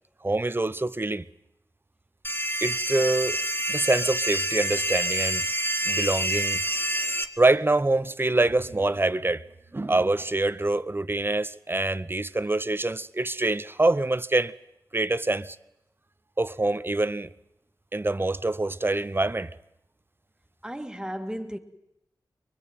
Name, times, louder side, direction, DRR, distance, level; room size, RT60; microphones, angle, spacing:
voice 1, 0.2-1.2 2.6-3.4 3.7-5.4 5.9-6.6 7.4-9.4 9.7-14.5 14.9-15.6 16.4-17.3 17.9-19.5, right 2 dB, 25° right, 0.9 m, -25 dB
sound 1, 2.2-7.2, right 1 dB, 25° left, 1.9 m, -27 dB
sound 2, 8.3-10.6, right 3 dB, 60° right, 2.0 m, -49 dB
voice 2, 20.6-21.6, equal, 10° right, 2.2 m, -34 dB
23.5 x 21.0 x 9.3 m
cardioid pair, 55°, 8 cm